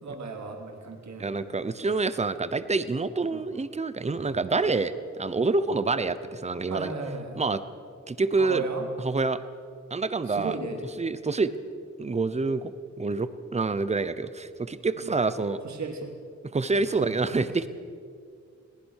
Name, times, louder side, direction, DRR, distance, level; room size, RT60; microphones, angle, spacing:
voice 1, 0.0-1.3 3.3-3.4 6.7-7.4 8.3-8.9 10.3-10.8 15.0-15.1 15.6-16.1 16.8-17.1, right 4 dB, 70° right, 3 dB, 2.9 m, -35 dB
voice 2, 1.2-4.9 5.2-6.9 7.3-7.6 8.1-8.6 9.0-9.4 9.9-10.5 11.0-11.5 12.0-12.7 13.0-15.6 16.5-17.7, right 3 dB, 20° right, 13 dB, 0.8 m, -27 dB
22.0 x 18.5 x 6.6 m, 2.2 s
wide cardioid pair, 160°, 29 cm